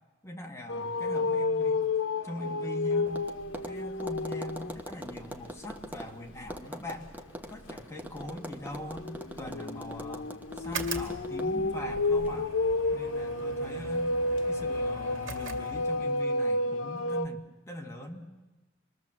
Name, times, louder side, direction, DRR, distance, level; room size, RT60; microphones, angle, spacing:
voice 1, 0.2-1.9 2.2-3.2 3.7-7.1 7.5-9.1 9.4-12.5 12.9-14.1 14.5-18.2, left 1 dB, 15° left, 2 dB, 1.8 m, -41 dB
sound 1, 0.7-4.8 5.3-5.6 8.0-17.3, left 2 dB, 90° left, 0.9 m, -31 dB
Tap, 3.1-12.4, equal, 10° right, 1.0 m, -44 dB
sound 2, 10.6-16.2, right 3 dB, 85° right, 2.2 m, -42 dB
26.0 x 21.5 x 7.5 m, 1.2 s
head